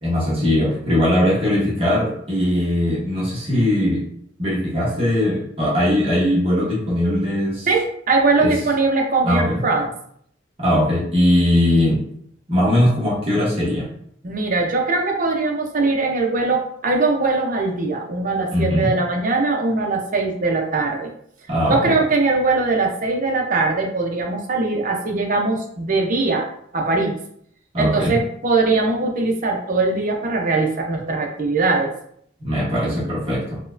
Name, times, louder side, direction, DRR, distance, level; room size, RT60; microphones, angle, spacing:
voice 1, 0.0-4.0 4.4-7.7 8.4-8.5 9.2-9.7 10.6-12.0 12.5-13.9 18.5-18.9 21.5-21.9 27.7-28.2 32.4-33.6, left 1 dB, 30° right, -7 dB, 1.1 m, -20 dB
voice 2, 7.7-9.9 14.2-21.1 21.7-26.5 26.7-27.1 27.8-31.9, right 3 dB, 45° right, 1 dB, 0.7 m, -21 dB
4.2 x 2.2 x 2.6 m, 0.67 s
head